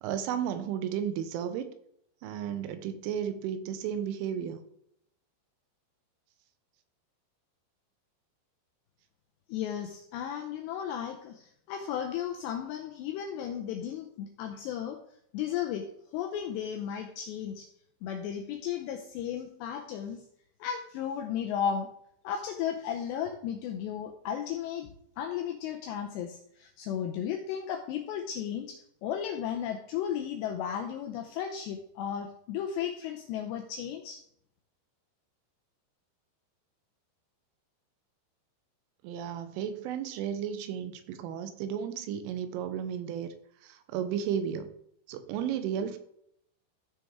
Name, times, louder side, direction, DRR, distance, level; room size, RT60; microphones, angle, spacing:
voice 1, 0.0-1.7 2.2-4.6 39.0-43.3 43.6-44.7 45.1-46.0, right 8 dB, 85° right, 10 dB, 3.3 m, -33 dB
voice 2, 9.5-15.0 15.3-15.9 16.1-17.7 18.0-20.2 20.6-21.9 22.2-24.9 25.2-34.2, left 9 dB, 85° left, 4 dB, 2.5 m, -34 dB
14.0 x 6.2 x 3.6 m, 0.72 s
omnidirectional pair, 5.7 m